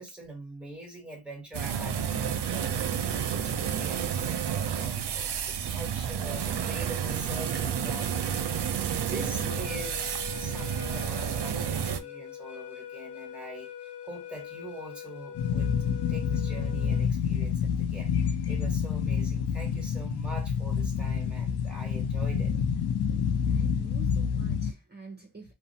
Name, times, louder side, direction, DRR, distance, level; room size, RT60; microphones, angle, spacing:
voice 1, 0.0-8.4 8.8-15.8 16.1-22.5, right 2 dB, 5° right, 1.4 m, -44 dB
sound 1, 1.5-12.0, right 8 dB, 80° right, 0.5 m, -30 dB
sound 2, 9.3-17.1, left 10 dB, 45° left, 1.0 m, -43 dB
sound 3, 15.3-24.7, left 7 dB, 70° left, 0.5 m, -28 dB
voice 2, 23.5-25.5, right 3 dB, 25° right, 0.7 m, -48 dB
2.5 x 2.1 x 2.7 m
cardioid pair, 50°, 40 cm